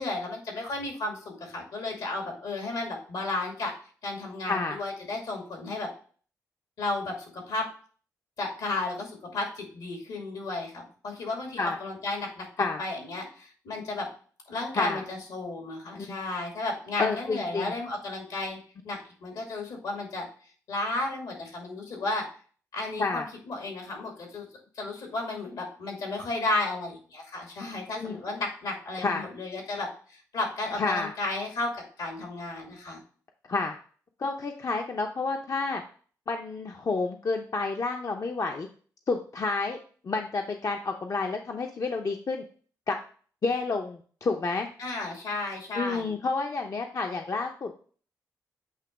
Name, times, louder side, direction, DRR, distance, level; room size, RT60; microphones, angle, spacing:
voice 1, 0.0-3.7 4.0-5.9 6.8-7.7 8.4-14.1 14.5-18.6 18.8-20.3 20.7-22.3 22.7-24.5 24.8-33.0 44.8-46.1, left 2 dB, 80° left, 1 dB, 2.3 m, -33 dB
voice 2, 17.0-17.7 23.0-23.2 28.0-28.2 29.0-29.2 30.7-31.1 33.5-33.8 34.2-35.8 36.3-38.7 39.1-39.8 40.0-42.4 42.9-43.0 43.4-44.7 45.7-47.8, left 3 dB, 50° left, 3 dB, 0.7 m, -29 dB
8.3 x 3.0 x 4.7 m, 0.43 s
supercardioid pair, 50°, 7 cm